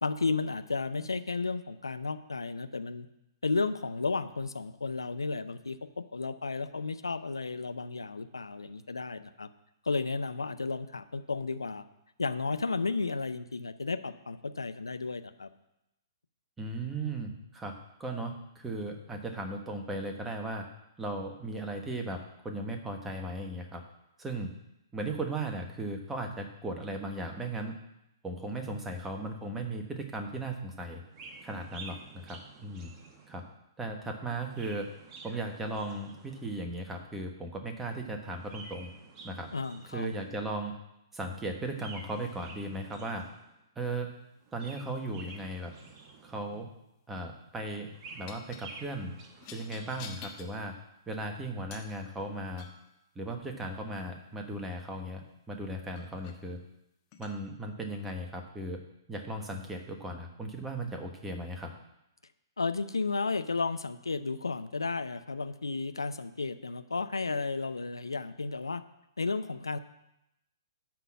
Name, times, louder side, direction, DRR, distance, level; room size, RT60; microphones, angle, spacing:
voice 1, 0.0-3.1 3.4-9.5 9.8-11.8 12.2-15.5 39.5-40.1 62.6-68.8 69.2-69.8, left 4 dB, 80° left, 11 dB, 0.6 m, -33 dB
voice 2, 16.6-17.7 18.0-20.6 21.0-23.8 24.2-24.5 24.9-27.7 28.2-31.0 31.4-32.9 33.3-33.4 33.8-34.9 35.2-38.9 39.2-39.5 39.9-40.8 41.1-43.2 43.8-44.1 44.5-45.7 46.2-46.7 47.1-47.9 48.2-49.1 49.5-50.7 51.1-52.7 53.1-56.6 57.2-58.8 59.1-61.7, right 2 dB, 10° right, 3 dB, 1.3 m, -37 dB
Chirp tweet, 31.1-33.6 34.3-36.7 38.2-40.4 41.7-43.6 44.4-46.6 47.7-50.2, right 4 dB, 30° right, 1.2 m, -50 dB
sound 1, 46.3-46.7 48.3-48.7 49.4-50.5 51.7-52.0 52.6-52.9 55.3-55.4 55.9-56.4 57.1-57.3, left 6 dB, 35° left, 1.3 m, -48 dB
11.5 x 4.0 x 7.4 m, 0.87 s
figure-of-eight pair, 120°, 2 cm